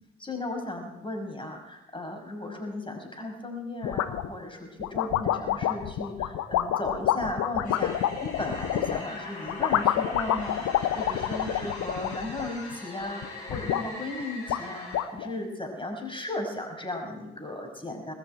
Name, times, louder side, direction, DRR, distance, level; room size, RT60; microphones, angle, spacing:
voice 1, 0.2-10.7 10.9-18.1, left 2 dB, 15° left, 3 dB, 5.6 m, -36 dB
sound 1, 3.8-4.3 4.8-9.0 9.5-12.7 13.0-13.8 14.2-14.3 14.5-15.3, left 11 dB, 55° left, 1.0 m, -28 dB
sound 2, 7.6-15.0, left 2 dB, 85° left, 4.2 m, -41 dB
20.0 x 8.5 x 7.9 m, 0.92 s
figure-of-eight pair, 40°, 32 cm